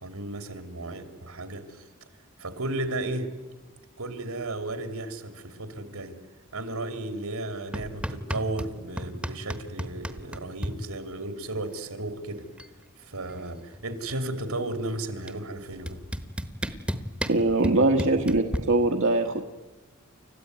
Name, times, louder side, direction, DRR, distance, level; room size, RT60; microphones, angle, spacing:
voice 1, 0.0-1.9 2.4-3.3 4.0-6.2 6.5-12.5 13.0-16.0, right 2 dB, 80° right, 9 dB, 2.9 m, -34 dB
sound 1, 7.7-8.7 9.0-10.7 12.0-12.1 12.3-12.8 13.0-14.4 15.3-15.4 15.9-18.6, equal, 5° right, 1.2 m, -32 dB
voice 2, 17.3-19.4, right 2 dB, 60° right, 3 dB, 1.3 m, -22 dB
29.5 x 14.5 x 9.5 m, 1.3 s
head